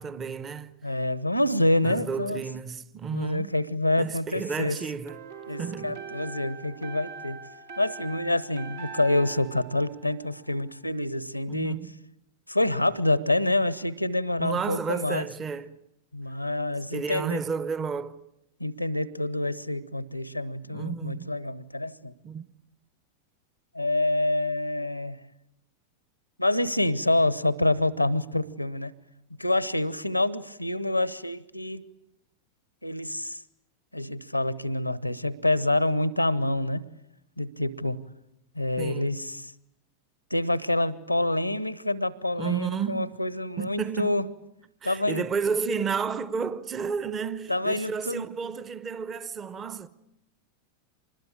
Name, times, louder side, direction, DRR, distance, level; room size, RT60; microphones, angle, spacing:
voice 1, 0.0-0.7 1.8-3.5 4.0-5.2 5.6-6.0 11.5-12.0 14.4-15.8 16.9-18.2 20.7-21.3 22.2-22.4 38.8-39.2 42.4-43.2 43.6-44.2 44.8-49.9, right 6 dB, 25° right, 1.0 m, -32 dB
voice 2, 0.8-2.4 3.1-4.8 5.5-7.4 7.8-11.8 12.5-15.3 16.1-17.4 18.6-22.1 23.7-25.2 26.4-28.9 29.4-31.8 32.8-33.4 33.9-36.8 37.4-38.0 38.6-39.5 40.3-44.2 44.8-45.2 47.5-48.2, left 1 dB, 90° left, 1.0 m, -27 dB
sound 1, 4.7-10.7, right 5 dB, 65° right, 2.4 m, -42 dB
25.5 x 20.5 x 8.7 m
figure-of-eight pair, 90°, 0 cm